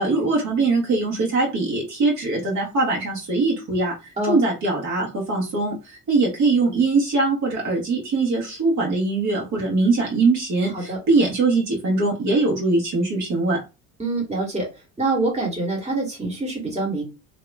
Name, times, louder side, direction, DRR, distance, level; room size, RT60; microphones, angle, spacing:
voice 1, 0.0-5.8 6.1-13.6, right 3 dB, 50° right, -2 dB, 1.5 m, -22 dB
voice 2, 14.0-14.7 15.0-17.0, right 2 dB, 15° right, -2 dB, 1.5 m, -25 dB
2.9 x 2.8 x 2.2 m, 0.28 s
hypercardioid pair, 70°, 38 cm